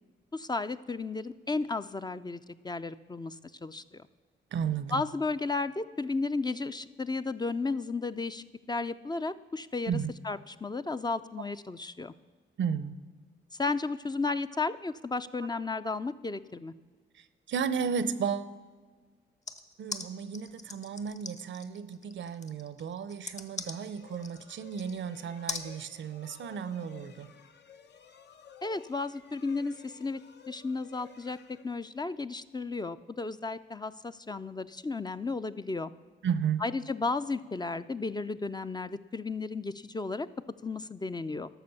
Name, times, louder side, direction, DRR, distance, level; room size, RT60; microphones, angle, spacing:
voice 1, 0.3-2.4 2.6-3.4 3.6-4.0 4.9-10.0 10.2-12.1 13.6-16.7 28.6-30.2 30.5-31.4 31.6-35.9 36.6-40.3 40.6-41.5, left 3 dB, 20° left, 0.4 m, -33 dB
voice 2, 4.5-5.0 9.9-10.1 12.6-12.9 15.4-15.5 17.1-18.5 19.8-27.3 36.2-36.6, right 7 dB, 70° right, 0.6 m, -34 dB
sound 1, 19.5-25.0 25.5-25.7, left 3 dB, 35° left, 1.0 m, -40 dB
sound 2, 23.5-32.3, left 8 dB, 60° left, 0.7 m, -55 dB
12.0 x 6.4 x 6.9 m
cardioid pair, 70°, 20 cm